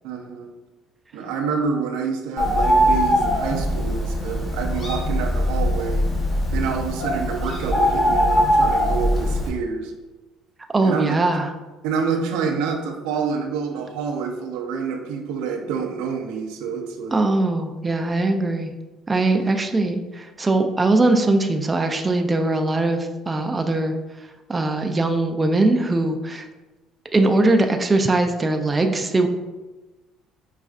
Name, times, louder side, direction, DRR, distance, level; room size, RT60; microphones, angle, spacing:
voice 1, 0.0-0.5 1.1-6.1 6.5-9.9 10.8-11.1 11.8-17.2 19.3-19.5, right 5 dB, 90° right, 4 dB, 0.4 m, -27 dB
Bird, 2.4-9.5, equal, 40° left, 1.0 m, -21 dB
voice 2, 10.7-11.5 17.1-18.7 19.1-26.5 27.1-29.3, right 2 dB, 20° right, 5 dB, 0.3 m, -21 dB
5.2 x 2.4 x 2.4 m, 1.1 s
cardioid pair, 115°, 0 cm